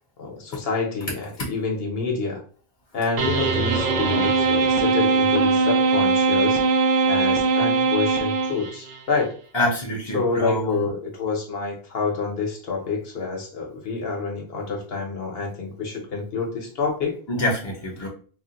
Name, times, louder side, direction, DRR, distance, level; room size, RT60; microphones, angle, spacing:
voice 1, 0.2-2.4 2.9-6.6 7.1-9.3 10.1-17.1 18.0-18.1, left 4 dB, 70° left, 1 dB, 1.1 m, -27 dB
sound 1, 3.2-9.0, right 4 dB, 55° right, 0.6 m, -21 dB
voice 2, 9.5-10.8 17.3-18.1, left 1 dB, 30° left, -2 dB, 0.7 m, -25 dB
2.5 x 2.1 x 3.9 m, 0.42 s
omnidirectional pair, 1.0 m